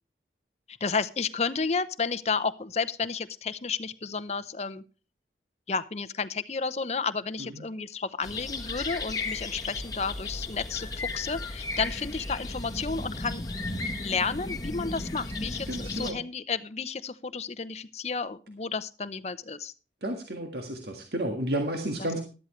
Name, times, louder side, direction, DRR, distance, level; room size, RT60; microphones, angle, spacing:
voice 1, 0.7-4.8 5.7-13.4 14.0-19.7 22.0-22.1, left 5 dB, 35° left, 13 dB, 0.7 m, -32 dB
sound 1, 8.2-16.1, left 2 dB, 20° left, 1.4 m, -35 dB
voice 2, 15.7-16.2 20.0-22.2, right 1 dB, 60° right, 3 dB, 1.7 m, -31 dB
13.0 x 12.5 x 3.1 m, 0.34 s
head